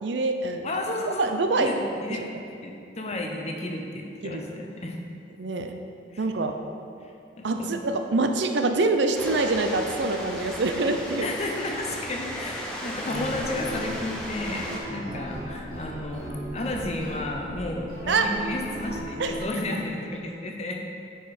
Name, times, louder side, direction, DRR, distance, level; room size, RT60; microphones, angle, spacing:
voice 1, 0.0-0.7 1.2-1.7 2.1-2.2 4.2-4.4 5.4-5.7 6.2-6.5 7.4-11.3 14.7-14.8 18.1-18.3 19.2-19.4, right 3 dB, 65° right, 6 dB, 0.5 m, -25 dB
voice 2, 0.6-2.3 2.6-4.9 6.1-6.3 7.0-7.1 7.4-7.7 11.2-20.9, left 2 dB, 35° left, 1 dB, 0.7 m, -32 dB
sound 1, 9.2-14.8, equal, 5° left, 0.8 m, -36 dB
sound 2, 13.1-19.4, equal, 45° right, 1.3 m, -37 dB
9.0 x 5.0 x 4.2 m, 2.5 s
head